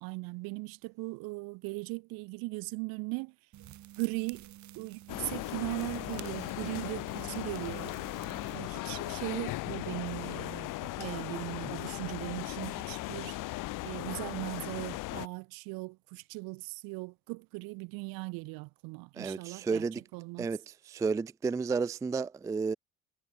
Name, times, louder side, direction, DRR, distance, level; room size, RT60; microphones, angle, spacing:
voice 1, 0.0-3.3 4.0-4.4 4.8-7.9 8.5-13.4 13.8-19.8 20.1-20.5, right 27 dB, 60° right, 0.9 m, -38 dB
sound 1, 3.5-8.6, right 13 dB, 45° right, 1.2 m, -51 dB
sound 2, 5.1-15.3, left 19 dB, 55° left, 0.9 m, -38 dB
sound 3, 7.8-9.7, right 19 dB, 75° right, 3.8 m, -67 dB
voice 2, 19.2-20.0 20.4-22.8, right 4 dB, 10° right, 0.3 m, -32 dB
hypercardioid pair, 60°, 39 cm